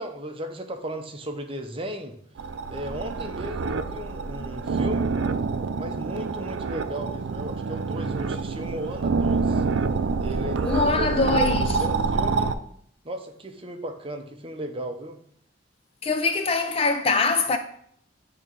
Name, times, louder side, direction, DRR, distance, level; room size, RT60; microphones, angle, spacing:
voice 1, 0.0-2.2 2.7-5.1 5.7-9.6 10.2-12.5 13.0-15.2, equal, 30° right, 0.7 m, -35 dB
sound 1, 2.4-12.6, right 4 dB, 80° right, 0.4 m, -27 dB
voice 2, 10.6-11.8 16.0-17.6, left 4 dB, 30° left, 0.4 m, -23 dB
8.9 x 3.0 x 5.3 m
head